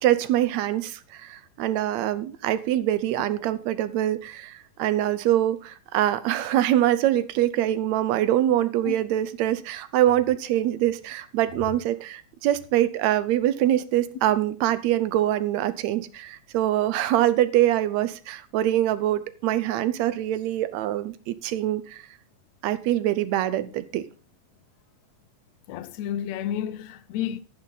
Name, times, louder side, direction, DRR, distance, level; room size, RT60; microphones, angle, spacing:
voice 1, 0.0-22.0 22.6-24.0, right 13 dB, 75° right, 1.8 m, -24 dB
voice 2, 25.7-27.4, left 10 dB, 70° left, 1.8 m, -31 dB
12.0 x 9.8 x 4.0 m
omnidirectional pair, 3.6 m